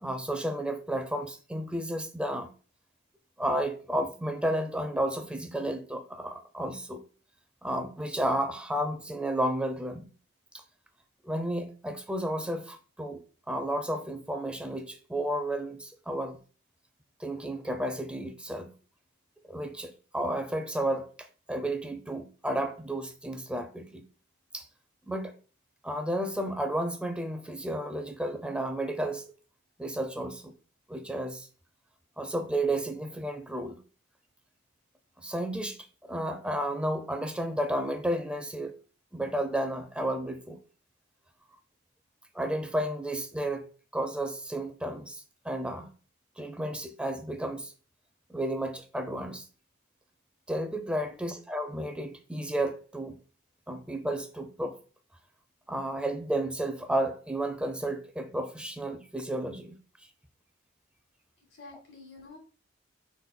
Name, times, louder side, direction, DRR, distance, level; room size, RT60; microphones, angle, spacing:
voice 1, 0.0-2.5 3.4-7.0 7.6-10.1 10.5-10.6 11.2-13.2 13.5-16.4 17.2-18.7 19.5-24.0 24.5-24.7 25.1-25.3 25.8-29.2 29.8-30.5 30.9-31.5 32.2-33.8 35.2-38.7 39.1-40.6 42.3-45.9 46.4-47.7 48.3-49.5 50.5-53.2 53.7-54.8 55.7-59.8, right 1 dB, 5° right, 0.5 m, -32 dB
voice 2, 61.4-62.4, left 3 dB, 65° left, 1.9 m, -49 dB
5.8 x 3.5 x 2.2 m
head